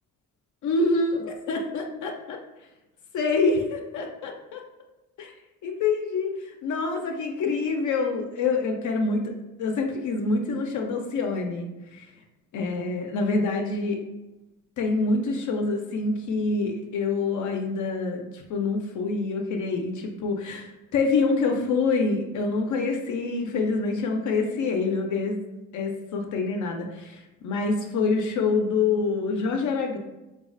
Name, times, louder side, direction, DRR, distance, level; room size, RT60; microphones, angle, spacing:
voice 1, 0.6-2.4 3.1-4.6 5.2-5.3 5.6-9.3 9.6-12.1 12.5-14.0 14.8-25.4 25.7-30.0, left 3 dB, 65° left, 2 dB, 0.4 m, -26 dB
3.1 x 2.3 x 2.4 m, 1.0 s
cardioid pair, 75°, 32 cm